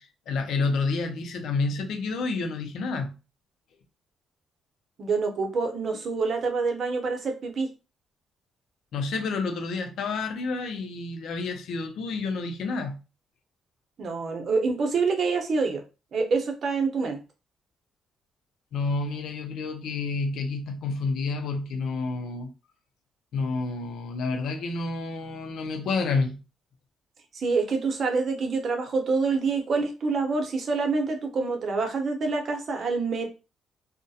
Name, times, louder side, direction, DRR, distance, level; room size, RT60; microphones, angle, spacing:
voice 1, 0.0-3.2 8.9-13.0 18.7-22.5 23.3-26.4, left 3 dB, 75° left, 0.5 m, -29 dB
voice 2, 5.0-7.7 14.0-15.8 16.1-17.2 27.3-33.3, right 4 dB, 55° right, 0.6 m, -26 dB
2.3 x 2.1 x 2.6 m
cardioid pair, 90°, 0 cm